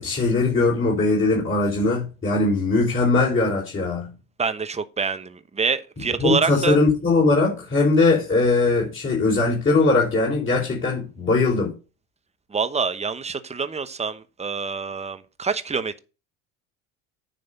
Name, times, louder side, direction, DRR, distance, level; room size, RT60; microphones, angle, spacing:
voice 1, 0.0-4.1 6.2-11.8, left 3 dB, 30° left, 4.0 m, -20 dB
voice 2, 4.4-6.8 12.5-16.0, right 5 dB, 15° right, 1.0 m, -26 dB
9.7 x 3.5 x 6.8 m
hypercardioid pair, 75°, 40 cm